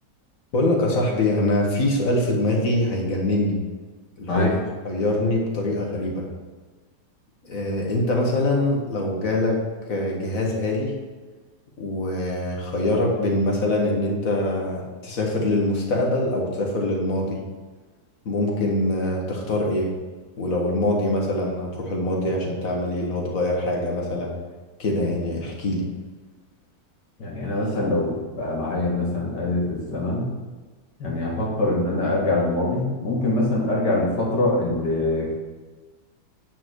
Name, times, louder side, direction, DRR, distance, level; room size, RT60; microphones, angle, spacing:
voice 1, 0.5-3.6 4.2-4.5 4.9-6.3 7.4-9.6 9.9-11.0 11.8-17.4 18.3-19.9 20.4-24.4 24.8-25.9, left 1 dB, 55° left, -1 dB, 1.8 m, -24 dB
voice 2, 27.2-30.3 31.0-35.3, left 2 dB, 75° left, -3 dB, 2.6 m, -24 dB
9.1 x 4.5 x 4.6 m, 1.3 s
omnidirectional pair, 1.8 m